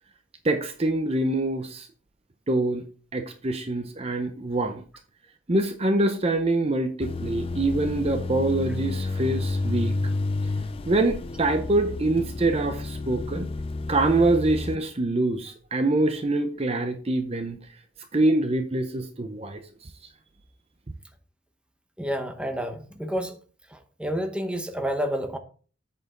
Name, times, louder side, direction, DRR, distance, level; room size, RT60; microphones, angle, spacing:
voice 1, 0.4-1.9 2.5-2.8 3.1-4.8 5.5-9.9 10.9-13.5 13.9-17.6 18.1-19.7, right 2 dB, 30° right, 0.6 m, -25 dB
sound 1, 7.0-14.8, left 3 dB, 30° left, 0.4 m, -30 dB
voice 2, 22.0-23.4 23.7-25.4, equal, 5° right, 0.9 m, -29 dB
8.0 x 6.7 x 3.8 m
head